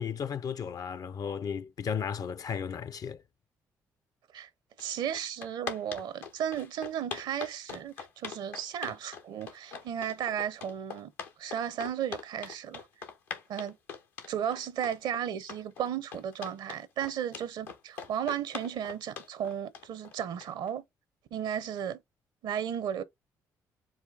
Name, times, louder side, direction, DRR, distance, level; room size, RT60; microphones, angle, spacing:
voice 1, 0.0-3.2, left 7 dB, 45° left, 0.5 m, -34 dB
sound 1, 4.8-4.9 5.1-20.7, left 6 dB, 85° left, 1.0 m, -42 dB
voice 2, 4.8-11.1 11.4-12.9 13.5-13.8 14.3-20.8 21.3-22.0 22.4-23.0, right 9 dB, 65° right, 0.7 m, -34 dB
4.9 x 2.2 x 3.9 m
hypercardioid pair, 50°, 8 cm